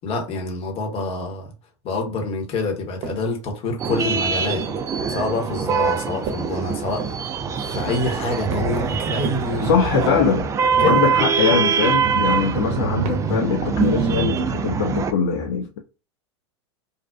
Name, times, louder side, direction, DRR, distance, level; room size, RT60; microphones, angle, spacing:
voice 1, 0.0-1.5 1.8-4.7 5.1-7.3 7.6-9.7 10.8-11.0, left 3 dB, 40° left, 1.0 m, -26 dB
sound 1, 3.0-3.4 3.8-4.9 5.5-5.8 6.3-6.6 7.0-7.3 7.7-8.1 8.5-9.0 9.2-9.6 10.0-10.4 10.8-11.2 11.5-11.9 12.3-12.6 13.0-13.4 13.8-14.1, right 5 dB, 45° right, 0.7 m, -34 dB
sound 2, 3.8-15.1, right 6 dB, 20° right, 0.3 m, -23 dB
voice 2, 9.6-10.5 10.8-15.8, left 6 dB, 60° left, 0.4 m, -22 dB
2.5 x 2.2 x 2.3 m
hypercardioid pair, 95°, 14 cm